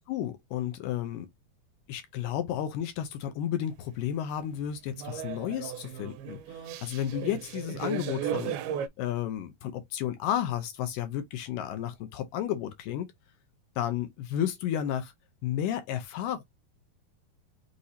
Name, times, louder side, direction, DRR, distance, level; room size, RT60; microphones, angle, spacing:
voice 1, 0.1-1.3 1.9-8.6 9.0-13.1 13.8-15.1 15.4-16.4, left 10 dB, 75° left, 2.0 m, -32 dB
sound 1, 4.7-8.9, right 9 dB, 85° right, 2.4 m, -36 dB
6.4 x 2.7 x 2.7 m
omnidirectional pair, 4.4 m